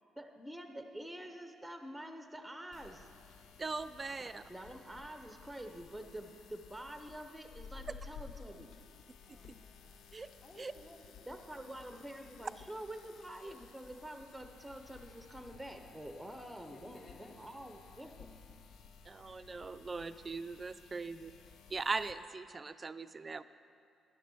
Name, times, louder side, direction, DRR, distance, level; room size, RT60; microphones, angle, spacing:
voice 1, 0.2-3.1 4.5-8.7 11.3-18.3, right 1 dB, ahead, 6 dB, 0.7 m, -47 dB
sound 1, 2.7-22.1, left 6 dB, 75° left, 0.5 m, -56 dB
voice 2, 3.6-4.4 10.1-10.3 10.6-10.7 19.1-21.3 21.7-23.4, right 4 dB, 30° right, 13 dB, 0.4 m, -40 dB
voice 3, 9.2-10.2 10.4-11.8 16.7-17.4 21.0-21.3, left 2 dB, 40° left, -1 dB, 1.9 m, -58 dB
10.5 x 7.9 x 6.2 m, 2.3 s
cardioid pair, 90°, 0 cm